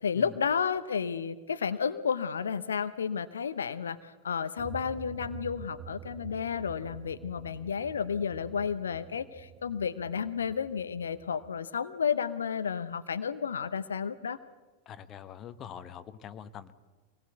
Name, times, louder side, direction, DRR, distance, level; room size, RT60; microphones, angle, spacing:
voice 1, 0.0-14.4, left 6 dB, 70° left, 12 dB, 0.8 m, -32 dB
sound 1, 4.6-11.5, right 8 dB, 35° right, 1.0 m, -48 dB
voice 2, 14.8-16.7, left 9 dB, 30° left, 11 dB, 1.3 m, -44 dB
25.0 x 19.5 x 8.2 m, 1.3 s
figure-of-eight pair, 90°, 0 cm